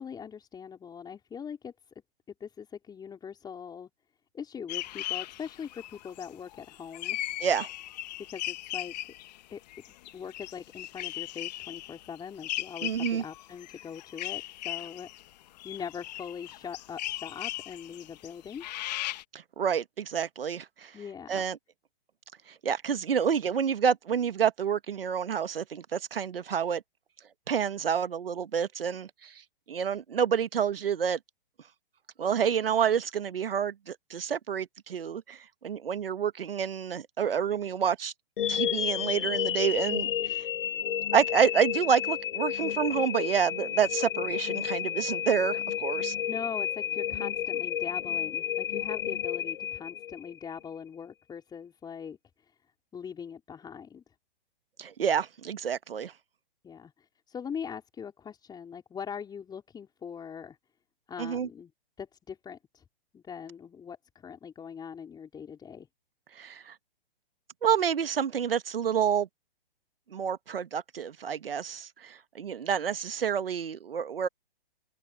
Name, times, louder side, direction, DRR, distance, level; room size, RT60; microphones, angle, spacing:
voice 1, 0.0-1.7 2.4-3.9 4.3-7.2 8.3-8.9 9.5-9.6 9.9-15.1 15.6-18.6 20.9-21.4 46.3-52.2 52.9-54.0 56.6-60.6 61.1-61.7 62.0-62.8 63.1-65.9, left 7 dB, 15° left, 4.8 m, -41 dB
sound 1, 4.7-9.4 9.7-19.2, left 15 dB, 45° left, 1.8 m, -38 dB
voice 2, 12.8-13.2 19.3-20.9 21.3-21.6 22.6-26.8 27.5-29.4 29.7-31.2 32.2-38.1 38.5-40.5 41.1-46.1 54.8-56.1 61.2-61.5 66.3-66.7 67.6-69.3 70.1-74.3, right 7 dB, 70° right, 1.7 m, -28 dB
sound 2, 38.4-50.5, left 10 dB, 60° left, 1.4 m, -31 dB
figure-of-eight pair, 125°, 30 cm